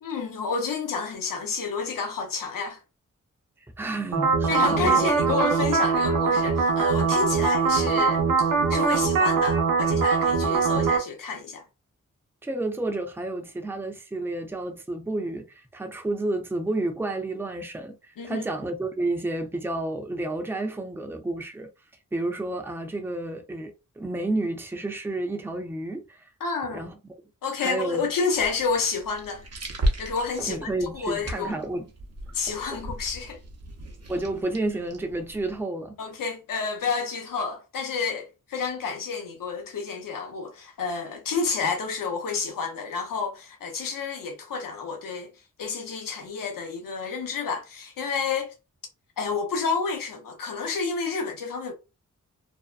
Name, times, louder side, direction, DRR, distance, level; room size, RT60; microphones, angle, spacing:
voice 1, 0.0-2.8 4.5-11.6 18.2-18.5 26.4-26.9 27.4-29.4 30.0-31.6 32.3-33.4 36.0-45.3 45.6-48.5 49.2-51.7, left 5 dB, 85° left, 0.6 m, -30 dB
voice 2, 3.8-5.1 12.4-21.7 22.1-26.3 26.7-27.0 27.6-28.1 30.5-31.8 32.7-32.8 34.1-36.0, right 2 dB, 5° right, 0.6 m, -30 dB
sound 1, 4.1-11.0, right 5 dB, 85° right, 0.6 m, -22 dB
sound 2, 28.3-35.6, right 1 dB, 50° right, 0.8 m, -35 dB
2.6 x 2.1 x 2.4 m
cardioid pair, 45°, 32 cm